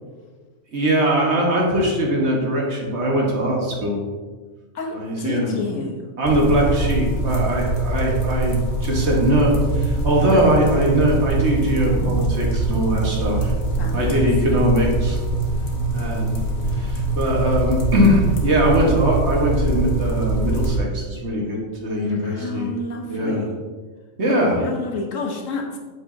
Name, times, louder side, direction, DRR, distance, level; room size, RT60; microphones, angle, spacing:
voice 1, 0.7-4.0 4.9-5.5 6.2-13.5 13.9-15.2 15.9-16.4 16.8-22.7 23.0-23.4 24.2-24.6, equal, 55° right, -2 dB, 1.5 m, -21 dB
voice 2, 4.7-6.1 10.3-10.4 13.8-14.2 22.1-23.5 24.6-25.8, left 3 dB, 75° left, 1 dB, 1.3 m, -30 dB
sound 1, 6.2-20.8, right 2 dB, 55° left, 1.2 m, -23 dB
7.7 x 4.8 x 2.6 m, 1.4 s
omnidirectional pair, 1.4 m